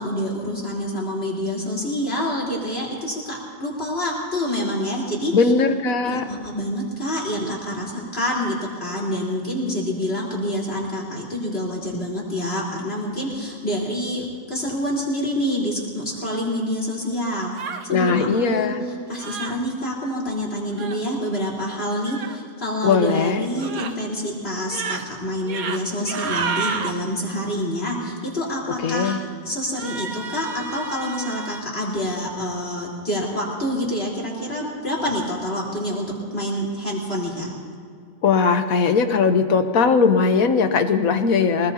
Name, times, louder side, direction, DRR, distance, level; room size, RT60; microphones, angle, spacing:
voice 1, 0.0-5.5 6.0-17.5 17.9-18.7 19.1-37.5, equal, 45° left, -4 dB, 4.4 m, -27 dB
voice 2, 5.3-6.2 17.9-18.8 22.8-23.4 28.8-29.2 38.2-41.7, left 5 dB, 80° left, 8 dB, 1.5 m, -19 dB
sound 1, 17.5-17.9 19.1-19.6 20.7-21.0 22.0-22.4 23.6-23.9 24.6-25.0 25.4-25.8 26.1-26.9 29.7-31.6, right 5 dB, 90° right, 1.5 m, -30 dB
24.5 x 20.5 x 2.9 m, 2.2 s
omnidirectional pair, 1.5 m